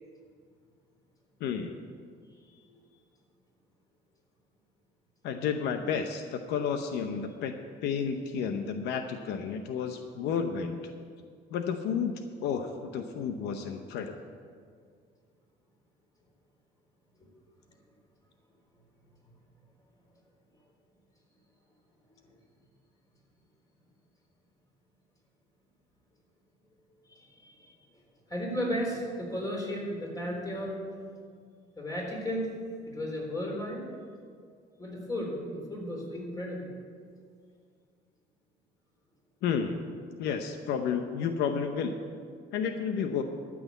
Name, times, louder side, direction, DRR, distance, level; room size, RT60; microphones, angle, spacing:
voice 1, 1.4-1.7 5.2-7.5 7.8-10.8 11.5-14.1 39.4-39.8 40.2-42.0 42.5-43.2, left 6 dB, 80° left, 6 dB, 0.8 m, -31 dB
voice 2, 2.4-2.8 17.2-17.3 27.1-27.8 28.3-30.8 31.8-32.5 32.9-33.8 34.8-36.7, equal, 20° left, -2 dB, 3.7 m, -34 dB
13.0 x 6.1 x 8.2 m, 2.1 s
cardioid pair, 110°, 17 cm